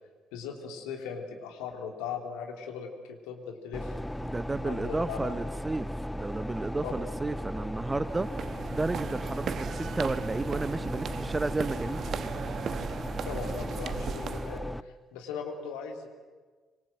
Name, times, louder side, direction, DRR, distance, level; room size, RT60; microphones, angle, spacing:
voice 1, 0.3-3.9 4.6-5.5 6.8-6.9 13.3-16.1, left 6 dB, 65° left, 3 dB, 3.3 m, -39 dB
sound 1, 3.7-14.8, equal, 10° left, 0.8 m, -36 dB
voice 2, 4.2-5.9 6.1-8.3 8.7-12.0, right 3 dB, 20° right, 15 dB, 0.9 m, -32 dB
sound 2, 8.1-14.6, right 7 dB, 50° right, 1.1 m, -37 dB
25.5 x 24.0 x 7.9 m, 1.4 s
figure-of-eight pair, 45°, 0 cm